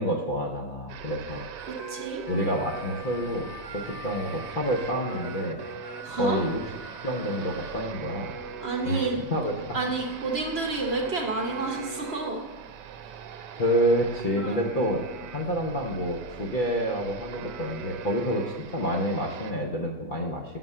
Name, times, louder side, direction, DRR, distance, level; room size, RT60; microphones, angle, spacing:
voice 1, 0.0-1.4 2.3-5.6 6.1-6.6 7.0-8.4 8.8-9.8 13.6-20.6, equal, 50° left, 0 dB, 0.6 m, -28 dB
sound 1, 0.9-19.5, right 7 dB, 85° right, 1.2 m, -41 dB
Harmonica, 1.2-7.8, left 1 dB, 65° left, 1.7 m, -44 dB
voice 2, 1.7-2.2 6.0-6.4 8.6-9.2 9.5-12.4 14.4-14.6, right 3 dB, 45° right, 1 dB, 0.9 m, -30 dB
6.0 x 5.8 x 5.4 m, 1.3 s
omnidirectional pair, 1.8 m